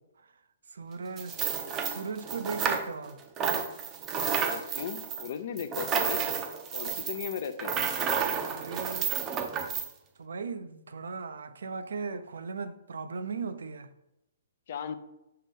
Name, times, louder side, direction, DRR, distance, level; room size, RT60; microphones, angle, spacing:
voice 1, 0.7-1.4 1.9-3.2 8.5-9.2 10.2-13.9, right 5 dB, 80° right, 0.5 m, -37 dB
sound 1, 1.2-3.1 3.4-9.9, right 7 dB, 25° right, 0.6 m, -31 dB
voice 2, 4.4-6.3 6.7-7.8 14.7-15.0, left 8 dB, 55° left, 0.5 m, -36 dB
5.6 x 3.1 x 5.3 m
hypercardioid pair, 140°, 0 cm